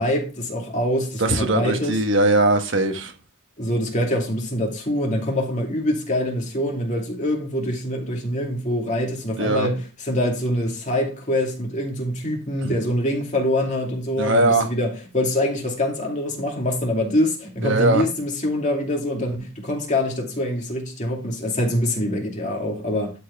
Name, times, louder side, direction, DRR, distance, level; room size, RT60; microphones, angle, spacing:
voice 1, 0.0-2.0 3.6-23.1, left 1 dB, 35° left, 2.4 m, -24 dB
voice 2, 1.2-3.1 9.4-9.7 12.6-12.7 14.2-14.7 17.6-18.0, right 2 dB, 60° right, 1.3 m, -20 dB
12.0 x 4.7 x 3.4 m
head